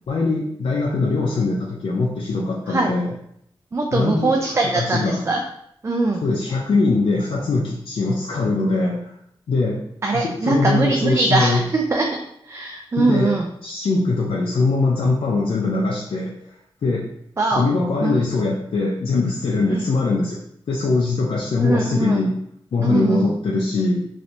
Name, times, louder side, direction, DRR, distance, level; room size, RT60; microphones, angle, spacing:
voice 1, 0.1-3.1 3.9-4.4 4.7-5.3 6.2-9.1 9.5-9.8 10.1-11.6 12.9-16.3 16.8-17.1 17.6-20.4 20.7-22.3 22.7-24.0, left 3 dB, 70° left, -3 dB, 0.5 m, -22 dB
voice 2, 3.7-5.4 5.8-6.2 10.0-13.5 17.4-17.6 18.0-18.2 19.7-19.9 21.6-22.3 22.8-23.4, right 2 dB, 30° right, 1 dB, 0.3 m, -22 dB
3.2 x 2.6 x 2.8 m, 0.70 s
wide cardioid pair, 120°, 10 cm